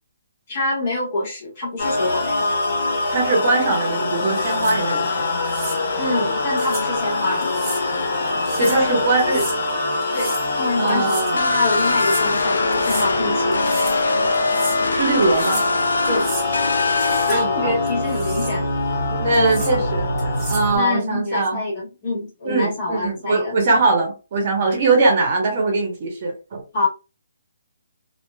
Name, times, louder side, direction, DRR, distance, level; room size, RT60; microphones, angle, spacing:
voice 1, 0.5-2.5 6.0-7.5 8.6-9.4 10.1-13.6 16.1-16.3 16.8-16.9 17.3-18.7 19.7-19.8 20.7-23.6 26.7-26.9, left 2 dB, 35° left, -3 dB, 1.4 m, -26 dB
sound 1, 1.8-20.8, left 2 dB, 55° left, 1.3 m, -24 dB
voice 2, 3.1-5.3 8.6-9.4 10.8-11.5 14.9-15.6 17.3-17.8 19.1-21.6 22.4-26.6, right 3 dB, 40° right, 1 dB, 1.0 m, -21 dB
sound 2, 4.3-4.8 5.4-5.8 6.6-6.9 7.4-7.8 8.3-8.8 9.2-9.6 10.0-10.5 10.9-11.4 11.8-12.3 12.7-13.1 13.5-14.0 14.3-14.8 15.2-15.7 16.0-16.5 16.9-17.4 17.9-18.6 19.3-19.7 20.2-20.7, right 2 dB, 10° right, 1.0 m, -34 dB
sound 3, 11.4-17.3, left 3 dB, 85° left, 0.4 m, -23 dB
3.0 x 2.4 x 2.3 m, 0.31 s
hypercardioid pair, 165°, 0 cm